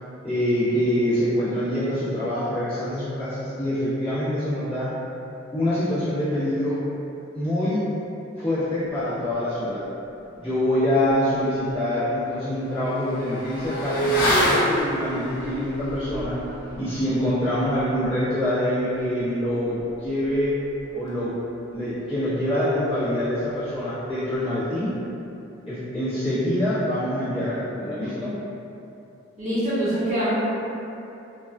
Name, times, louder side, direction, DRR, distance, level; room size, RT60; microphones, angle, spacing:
voice 1, 0.2-4.9 5.5-6.8 7.3-7.8 8.4-9.9 10.4-16.4 16.8-20.6 20.9-21.4 21.7-24.9 25.6-28.3, left 1 dB, 25° left, -15 dB, 1.2 m, -25 dB
Motorcycle / Accelerating revving vroom, 11.1-11.2 11.6-21.6 21.8-21.9, equal, 45° left, 0.5 m, -29 dB
voice 2, 29.4-30.4, right 1 dB, 35° right, -11 dB, 0.7 m, -24 dB
3.0 x 2.3 x 2.4 m, 2.8 s
head